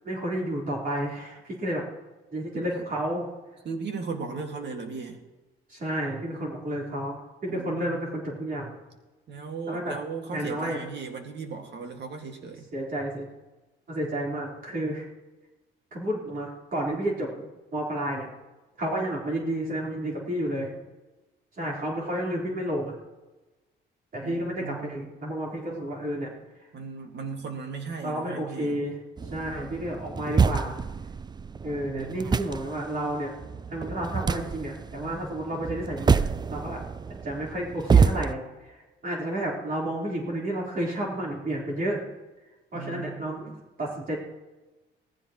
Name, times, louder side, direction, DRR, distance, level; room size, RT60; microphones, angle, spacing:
voice 1, 0.0-1.8 2.3-3.3 5.7-8.7 9.7-9.9 10.3-10.8 12.7-13.3 13.9-15.1 15.9-17.5 17.7-18.3 18.8-20.7 21.6-23.0 24.1-26.3 28.0-28.9 29.3-30.8 31.6-33.3 33.7-36.2 36.5-36.8 37.2-38.8 39.0-42.0 42.7-43.5 43.8-44.2, right 1 dB, 45° right, -4 dB, 4.0 m, -31 dB
voice 2, 2.5-2.9 3.6-5.2 7.5-8.0 9.3-12.7 24.2-25.0 26.7-28.8 31.8-32.3 42.7-43.6, right 4 dB, 60° right, 4 dB, 2.1 m, -37 dB
sound 1, 29.2-38.3, right 5 dB, 20° right, 0.4 m, -27 dB
18.0 x 15.0 x 3.1 m, 1.1 s
cardioid pair, 90°, 20 cm